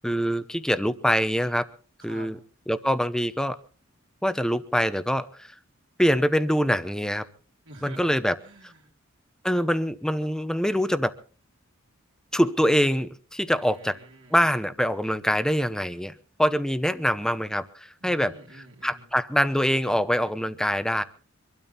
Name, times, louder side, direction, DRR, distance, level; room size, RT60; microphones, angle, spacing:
voice 1, 0.0-1.7 2.0-2.4 2.7-3.6 4.2-5.5 6.0-7.3 7.8-8.4 9.4-11.1 12.3-14.0 14.3-16.1 16.4-18.3 18.8-21.0, equal, 5° left, 13 dB, 0.8 m, -24 dB
voice 2, 7.6-8.0 8.4-8.9 13.6-14.4 18.0-19.1, right 1 dB, 60° right, -2 dB, 3.2 m, -48 dB
24.5 x 12.5 x 4.2 m, 0.38 s
head